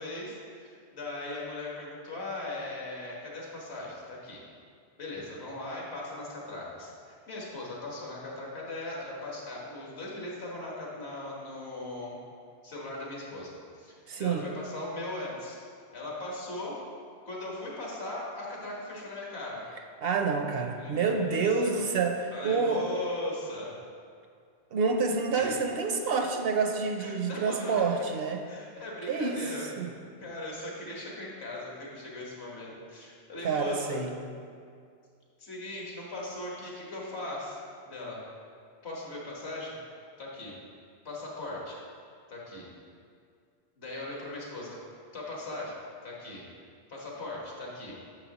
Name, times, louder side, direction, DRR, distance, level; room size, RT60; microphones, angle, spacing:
voice 1, 0.0-4.4 5.0-12.2 12.6-15.6 15.9-16.8 17.2-19.7 20.8-21.4 21.6-21.8 22.3-23.8 25.3-25.6 27.0-27.8 28.5-29.7 30.2-34.0 35.4-37.6 37.9-38.2 38.8-39.8 40.2-40.6 41.1-41.8 42.3-42.7 43.8-44.8 45.1-46.5 46.9-47.9, left 2 dB, 70° left, -4 dB, 1.7 m, -39 dB
voice 2, 14.1-14.4 20.0-22.9 24.7-28.4 29.1-29.5 29.8-29.9 33.4-34.1, right 4 dB, 65° right, 4 dB, 0.8 m, -28 dB
8.9 x 6.7 x 3.0 m, 2.2 s
omnidirectional pair, 1.1 m